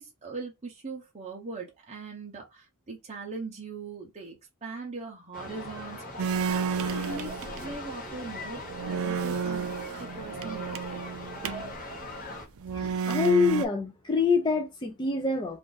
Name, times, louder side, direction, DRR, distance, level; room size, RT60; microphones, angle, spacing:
voice 1, 0.0-11.0, right 4 dB, 30° right, 0.7 m, -41 dB
sound 1, 5.3-12.5, left 1 dB, 40° left, 1.0 m, -40 dB
sound 2, 6.2-7.8 8.3-8.4 8.7-11.7 12.6-13.7, right 6 dB, 65° right, 0.4 m, -31 dB
voice 2, 12.7-15.6, left 4 dB, 20° left, 0.4 m, -26 dB
2.5 x 2.5 x 3.8 m
head